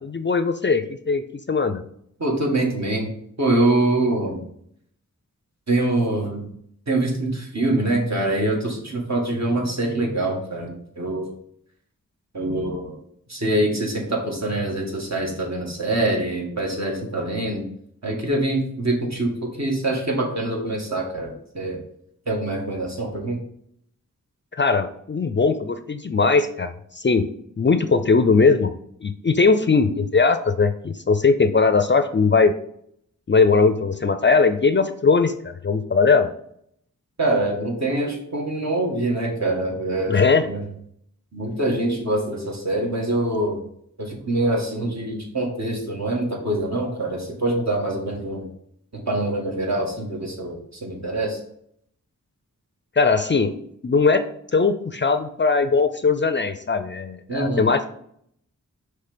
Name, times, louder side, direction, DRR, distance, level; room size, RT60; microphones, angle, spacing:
voice 1, 0.0-1.8 24.6-27.3 27.6-28.7 29.0-32.5 33.3-36.3 40.1-40.5 53.0-53.5 53.8-54.2 54.5-57.9, left 4 dB, 35° left, 9 dB, 0.4 m, -19 dB
voice 2, 2.2-3.1 3.4-4.4 5.7-6.5 6.9-11.3 12.3-13.0 13.3-17.6 18.0-21.8 22.3-23.4 37.2-40.6 41.3-43.6 44.0-48.4 48.9-51.4 57.3-57.7, right 2 dB, 55° right, -1 dB, 1.7 m, -24 dB
5.7 x 3.3 x 5.0 m, 0.69 s
wide cardioid pair, 50°, 32 cm